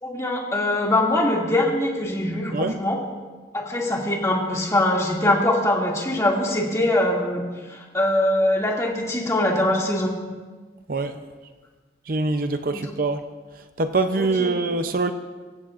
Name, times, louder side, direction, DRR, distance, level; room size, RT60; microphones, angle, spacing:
voice 1, 0.0-3.0 3.5-10.2 12.7-12.9 14.2-14.6, left 1 dB, 15° left, -2 dB, 2.3 m, -23 dB
voice 2, 10.9-11.2 12.1-13.2 13.8-15.1, right 3 dB, 55° right, 8 dB, 0.7 m, -24 dB
25.5 x 15.0 x 2.5 m, 1.4 s
head